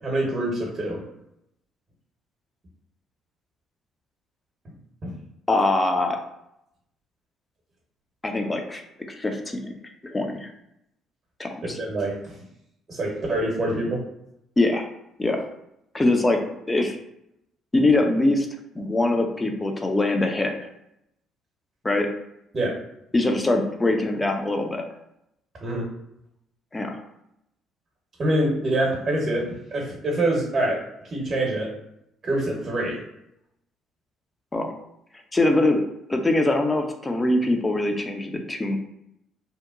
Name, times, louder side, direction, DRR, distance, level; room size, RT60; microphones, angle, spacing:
voice 1, 0.0-1.0 5.0-5.1 11.6-12.2 12.9-14.0 22.5-22.8 25.6-25.9 28.2-30.8 31.1-31.7 32.2-33.0, right 1 dB, 40° right, -2 dB, 0.8 m, -25 dB
voice 2, 5.5-6.2 8.2-8.8 9.2-9.7 10.0-10.5 11.4-11.8 14.6-14.9 15.2-15.5 15.9-17.0 17.7-18.5 18.7-20.5 21.8-22.1 23.1-24.8 26.7-27.0 34.5-34.7 35.3-35.8 36.1-38.8, left 2 dB, 20° left, 4 dB, 0.5 m, -23 dB
2.8 x 2.1 x 2.4 m, 0.81 s
hypercardioid pair, 50°, 0 cm